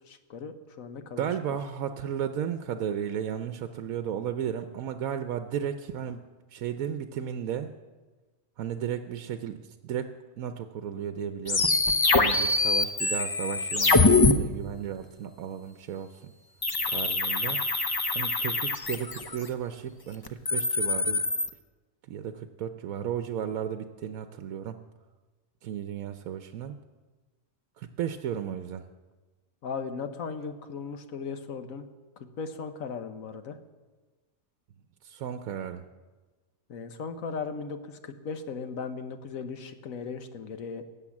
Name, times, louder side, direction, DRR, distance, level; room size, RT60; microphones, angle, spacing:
voice 1, 0.1-1.3 12.3-12.6 29.6-31.9 32.2-33.6 36.7-40.8, left 5 dB, 75° left, 9 dB, 1.4 m, -37 dB
voice 2, 1.2-7.7 8.6-11.7 12.1-16.3 16.9-17.6 18.1-21.2 22.1-24.8 25.6-26.7 27.8-28.9 35.0-35.8, right 9 dB, 85° right, 9 dB, 1.1 m, -34 dB
sound 1, 11.5-14.3 16.6-19.4 20.3-21.5, left 3 dB, 30° left, 0.4 m, -24 dB
18.0 x 7.6 x 7.3 m, 1.3 s
omnidirectional pair, 1.4 m